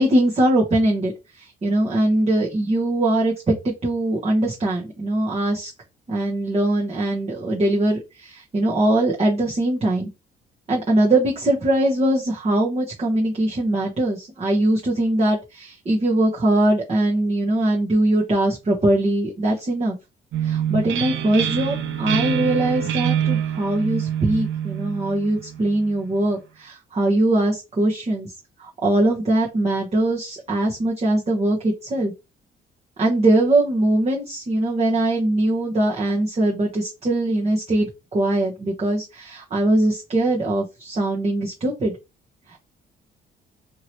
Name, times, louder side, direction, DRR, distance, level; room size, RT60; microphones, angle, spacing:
voice 1, 0.0-5.7 6.1-10.1 10.7-20.0 20.4-28.3 28.6-32.1 33.0-41.9 42.5-42.6, right 1 dB, 30° right, -3 dB, 1.0 m, -21 dB
sound 1, 20.3-25.9, right 9 dB, 70° right, 0.6 m, -26 dB
3.0 x 2.8 x 2.8 m, 0.25 s
cardioid pair, 90°, 20 cm